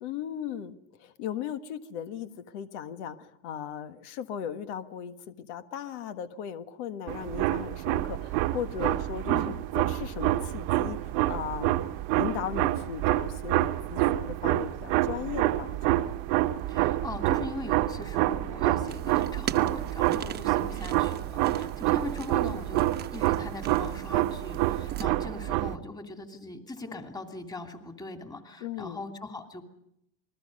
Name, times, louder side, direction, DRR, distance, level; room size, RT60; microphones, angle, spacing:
voice 1, 0.0-11.0 11.3-11.8 12.1-16.0 20.6-20.8 28.6-29.0, left 9 dB, 80° left, 9 dB, 1.7 m, -37 dB
sound 1, 7.1-25.7, right 16 dB, 65° right, 1.1 m, -27 dB
voice 2, 9.3-9.6 16.7-29.7, left 2 dB, 10° left, 4 dB, 2.8 m, -40 dB
sound 2, 18.9-25.1, right 9 dB, 30° right, 1.0 m, -41 dB
28.0 x 21.0 x 5.4 m, 0.77 s
supercardioid pair, 145°, 35 cm